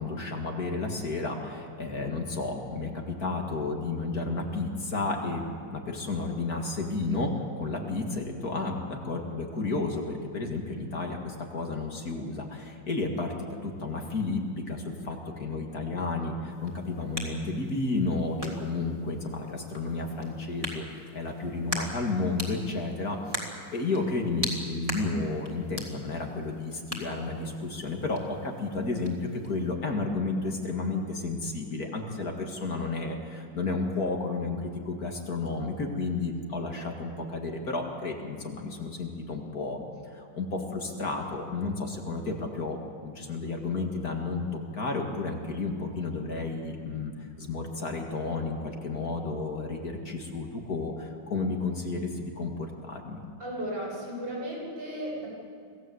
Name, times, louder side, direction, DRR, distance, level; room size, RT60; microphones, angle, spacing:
voice 1, 0.0-13.3 13.6-39.8 40.1-53.2, left 3 dB, 50° left, 2 dB, 2.7 m, -32 dB
sound 1, 16.5-29.7, equal, 15° right, 3.2 m, -41 dB
voice 2, 53.4-55.3, equal, 70° right, -4 dB, 8.3 m, -35 dB
26.5 x 17.0 x 8.0 m, 2.2 s
omnidirectional pair, 2.1 m